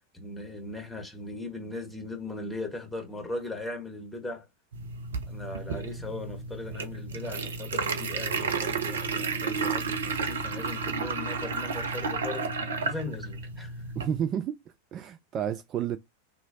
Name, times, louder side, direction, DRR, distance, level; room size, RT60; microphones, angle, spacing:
voice 1, 0.1-4.4 5.3-12.5 12.8-13.8, left 2 dB, 5° left, 1.5 m, -38 dB
sound 1, 4.7-14.2, right 4 dB, 65° right, 0.6 m, -32 dB
voice 2, 14.0-14.6 14.9-16.0, right 9 dB, 30° right, 0.3 m, -30 dB
3.0 x 2.4 x 4.0 m
figure-of-eight pair, 90°, 0 cm